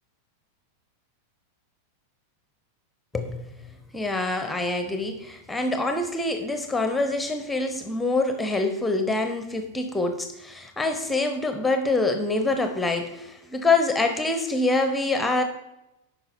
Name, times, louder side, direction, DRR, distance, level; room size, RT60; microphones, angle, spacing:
voice 1, 3.1-3.5 3.9-15.4, left 2 dB, 5° left, 6 dB, 0.9 m, -25 dB
9.8 x 5.8 x 4.3 m, 0.88 s
figure-of-eight pair, 90°, 0 cm